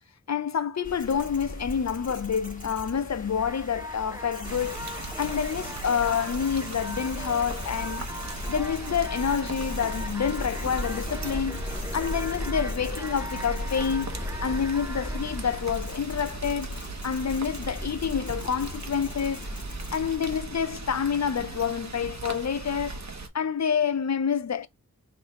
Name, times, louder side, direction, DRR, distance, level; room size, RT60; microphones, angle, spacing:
voice 1, 0.3-4.8 5.2-8.1 8.5-11.6 11.9-14.2 14.4-19.5 19.9-23.0 23.3-24.7, left 7 dB, 50° left, 0.6 m, -28 dB
sound 1, 0.8-20.4, left 1 dB, 25° left, 1.6 m, -37 dB
sound 2, 3.4-16.8, equal, 10° right, 0.7 m, -41 dB
Rain, 4.4-23.3, right 3 dB, 50° right, 1.2 m, -39 dB
3.9 x 3.4 x 3.1 m
wide cardioid pair, 45°, 35 cm